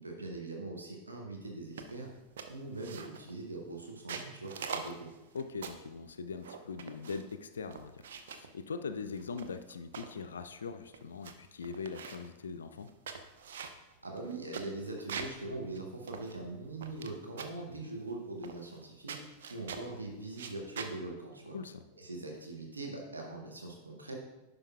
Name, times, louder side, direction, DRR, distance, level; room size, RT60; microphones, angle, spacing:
voice 1, 0.0-2.1 2.5-5.1 14.0-21.6 22.0-24.2, right 2 dB, 80° right, 1 dB, 1.0 m, -42 dB
sound 1, 1.8-2.1 2.4-3.3 3.9-5.9 6.4-7.3 7.7-8.5 9.1-10.2 10.6-10.7 10.9-11.3 11.6-12.3 12.8-15.4 15.7-15.8 16.1-17.1 17.4-17.7 18.4-18.8 19.1-19.9 20.3-20.9, right 6 dB, 60° right, 0.5 m, -43 dB
voice 2, 5.3-12.9 17.8-17.9 21.5-21.8, left 5 dB, 70° left, 9 dB, 0.3 m, -41 dB
9.9 x 5.2 x 2.4 m, 1.0 s
figure-of-eight pair, 90°, 0 cm